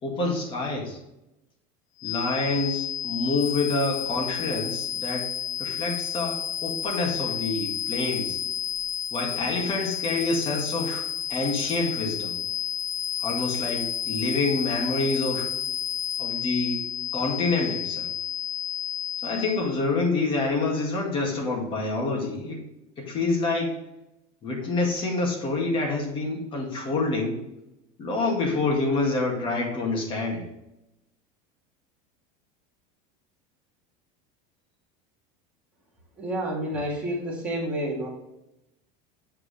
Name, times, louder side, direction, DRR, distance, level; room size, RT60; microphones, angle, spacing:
voice 1, 0.0-1.0 2.0-5.3 5.6-8.4 9.1-12.4 13.2-15.5 16.2-16.8 17.1-18.1 19.2-22.6 23.0-23.7 24.4-27.4 28.0-30.4, left 3 dB, 30° left, 0 dB, 2.0 m, -27 dB
sound 1, 2.0-19.7, left 9 dB, 80° left, 0.9 m, -31 dB
sound 2, 3.4-16.2, left 1 dB, 10° left, 1.9 m, -43 dB
voice 2, 36.2-38.1, right 1 dB, 5° right, -6 dB, 2.2 m, -29 dB
7.6 x 4.9 x 3.3 m, 0.90 s
cardioid pair, 160°, 18 cm